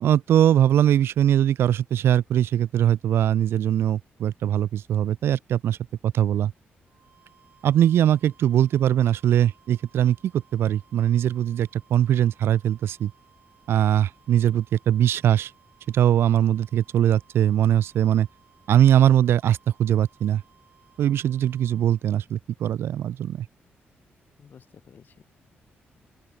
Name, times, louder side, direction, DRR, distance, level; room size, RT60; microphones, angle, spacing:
voice 1, 0.0-5.8 6.0-6.5 7.6-13.1 13.7-15.5 15.9-18.3 18.7-20.4 21.0-23.5, right 11 dB, 75° right, 0.8 m, -21 dB
sound 1, 6.8-22.1, right 7 dB, 50° right, 6.9 m, -60 dB
voice 2, 24.4-25.3, left 7 dB, 50° left, 4.9 m, -52 dB
open air
wide cardioid pair, 140°, 4 cm